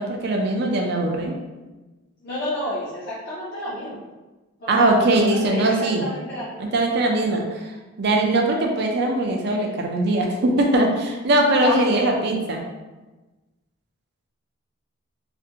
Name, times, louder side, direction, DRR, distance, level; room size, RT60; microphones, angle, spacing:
voice 1, 0.0-1.3 4.7-6.1 6.6-7.6 8.0-12.7, right 2 dB, 50° right, 1 dB, 0.4 m, -21 dB
voice 2, 2.2-4.0 4.6-6.7 11.6-11.8, left 1 dB, 50° left, -10 dB, 0.5 m, -30 dB
2.5 x 2.1 x 2.7 m, 1.2 s
head